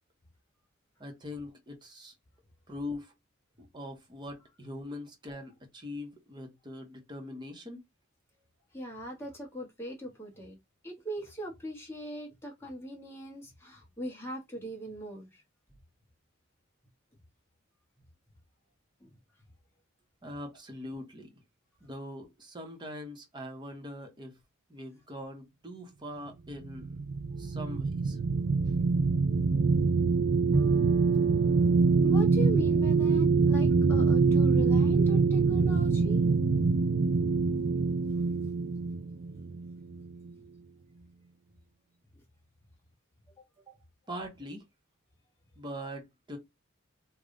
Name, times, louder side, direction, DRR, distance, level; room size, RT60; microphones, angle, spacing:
voice 1, 1.0-2.1 2.7-3.1 3.6-7.8 20.2-21.4 21.8-24.4 24.7-27.0 27.4-28.2 43.7-43.8 44.1-44.6 45.6-46.4, left 1 dB, 20° right, 0.9 m, -42 dB
voice 2, 8.7-10.6 10.8-15.4 19.0-19.1 32.0-36.2, equal, 10° left, 1.3 m, -40 dB
sound 1, 26.6-40.3, right 4 dB, 45° right, 0.4 m, -25 dB
Bowed string instrument, 30.5-34.3, right 1 dB, 70° right, 0.9 m, -41 dB
3.6 x 2.3 x 3.7 m
head